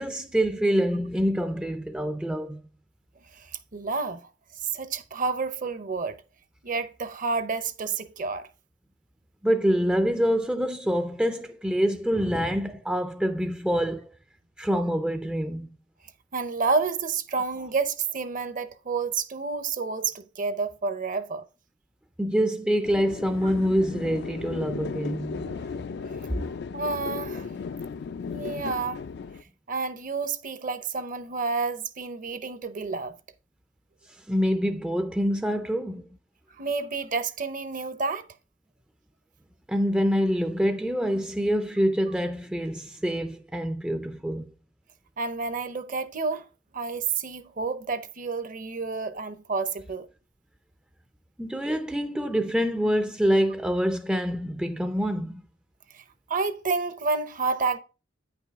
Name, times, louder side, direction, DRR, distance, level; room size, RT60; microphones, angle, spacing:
voice 1, 0.0-2.6 9.4-14.1 14.6-15.7 22.2-25.5 34.1-36.1 39.7-44.5 51.4-55.4, equal, 5° right, 0.4 m, -26 dB
voice 2, 3.3-4.2 4.6-6.2 6.6-8.5 16.3-21.4 25.5-25.7 26.7-27.5 28.2-29.0 29.7-33.1 36.6-38.3 45.2-46.5 46.7-50.1 55.9-56.0 56.3-57.8, right 4 dB, 45° right, 0.7 m, -29 dB
sound 1, 22.8-29.4, left 5 dB, 60° left, 0.4 m, -35 dB
9.3 x 5.9 x 3.5 m
head